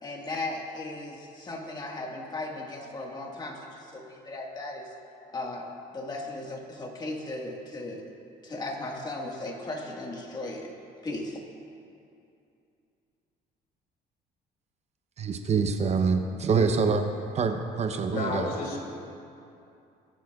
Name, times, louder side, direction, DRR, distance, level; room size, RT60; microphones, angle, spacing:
voice 1, 0.0-4.9 5.3-8.1 8.4-10.7 11.0-11.4, left 2 dB, 25° left, 0 dB, 1.6 m, -36 dB
voice 2, 15.2-17.0 17.3-18.5, right 5 dB, 40° right, 6 dB, 0.7 m, -25 dB
voice 3, 18.1-18.8, left 3 dB, 60° left, -1 dB, 2.4 m, -31 dB
20.0 x 10.0 x 2.4 m, 2.6 s
cardioid pair, 110°, 17 cm